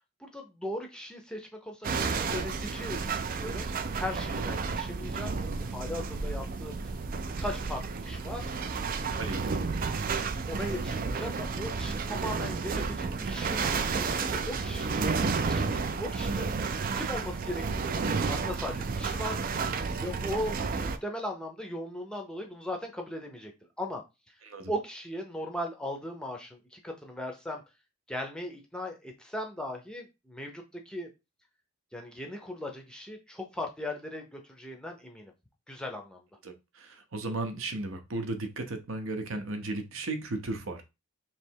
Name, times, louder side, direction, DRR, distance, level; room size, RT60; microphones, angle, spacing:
voice 1, 0.2-6.9 7.4-8.5 10.5-16.5 17.0-19.4 20.0-23.5 23.8-24.0 24.7-27.6 28.1-31.1 31.9-35.3 35.7-36.2, left 1 dB, 5° left, 2 dB, 0.6 m, -38 dB
sound 1, 1.8-21.0, right 4 dB, 40° right, 0.3 m, -31 dB
voice 2, 9.2-9.5 24.4-24.7 36.4-40.8, right 2 dB, 60° right, 7 dB, 0.7 m, -35 dB
3.2 x 2.9 x 4.5 m, 0.25 s
head